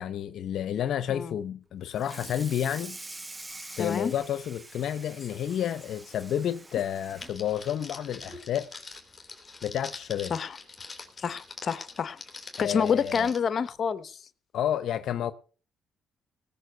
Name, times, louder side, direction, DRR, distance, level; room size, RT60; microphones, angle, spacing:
voice 1, 0.0-3.0 3.8-8.7 9.6-10.4 12.6-13.3 14.5-15.3, left 10 dB, 70° left, 0.7 m, -30 dB
Water tap faucet / Sink (filling or washing), 1.9-8.5 8.9-9.2 9.5-9.6 10.0-10.1 11.2-11.3 11.8-12.0, right 2 dB, 20° right, 1.3 m, -46 dB
voice 2, 3.8-4.1 10.3-10.6 11.2-12.2 12.6-14.2, left 6 dB, 50° left, 0.9 m, -28 dB
Crackle, 7.2-13.4, left 4 dB, 25° left, 3.7 m, -44 dB
18.5 x 6.7 x 6.7 m
cardioid pair, 90°, 0 cm